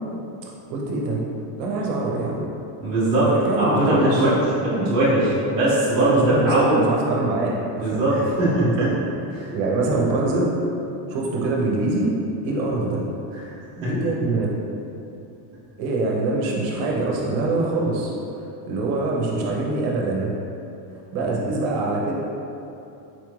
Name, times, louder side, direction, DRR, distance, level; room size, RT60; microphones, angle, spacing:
voice 1, 0.7-1.2 1.6-2.4 3.2-4.3 6.0-8.3 8.6-8.9 9.5-10.5 11.1-12.1 12.4-13.0 13.9-14.5 15.8-18.1 18.4-20.3 21.1-22.1, right 2 dB, 50° right, -2 dB, 0.6 m, -24 dB
voice 2, 2.8-3.3 3.6-4.3 4.6-6.8 7.8-8.9 9.4-9.5 13.8-13.9 21.2-21.4, right 1 dB, 10° right, -12 dB, 0.4 m, -20 dB
4.1 x 2.4 x 3.0 m, 2.7 s
cardioid pair, 165°, 50 cm